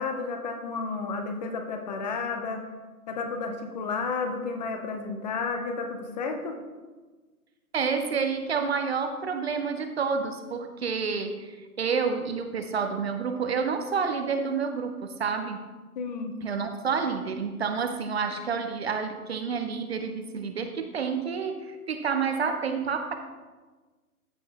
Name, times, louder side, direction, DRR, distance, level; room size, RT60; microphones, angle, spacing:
voice 1, 0.0-2.6 3.1-6.6 16.0-16.4, left 4 dB, 30° left, 5 dB, 0.8 m, -32 dB
voice 2, 7.7-15.7 16.4-23.2, right 5 dB, 45° right, 7 dB, 0.6 m, -29 dB
13.5 x 5.3 x 2.9 m, 1.3 s
hypercardioid pair, 145°, 45 cm